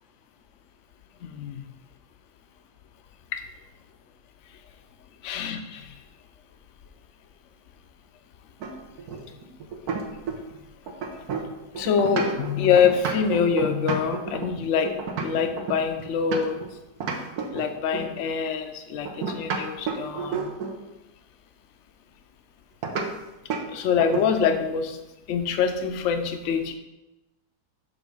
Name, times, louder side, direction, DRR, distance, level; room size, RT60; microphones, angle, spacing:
voice 1, 1.2-1.7 3.3-3.4 5.2-5.9 11.8-16.6 17.5-20.5 23.7-25.0 25.3-26.7, left 6 dB, 60° left, 7 dB, 0.8 m, -25 dB
sound 1, 8.6-10.6 10.9-16.7 17.0-18.2 19.1-20.8 22.8-23.1 23.5-23.7 24.0-24.6, right 5 dB, 70° right, 1.4 m, -31 dB
7.1 x 3.4 x 5.4 m, 0.99 s
omnidirectional pair, 1.7 m